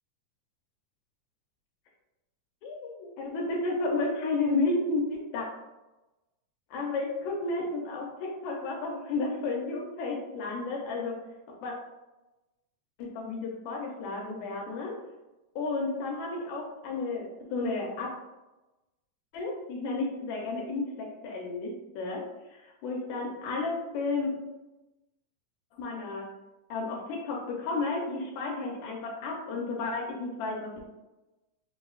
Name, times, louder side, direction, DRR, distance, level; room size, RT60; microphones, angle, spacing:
voice 1, 2.6-5.5 6.7-11.2 11.6-11.7 13.0-15.0 15.6-18.1 19.3-24.4 25.8-26.3 26.7-30.7, left 3 dB, 80° left, -1 dB, 1.8 m, -32 dB
6.0 x 2.2 x 2.3 m, 1.0 s
omnidirectional pair, 3.5 m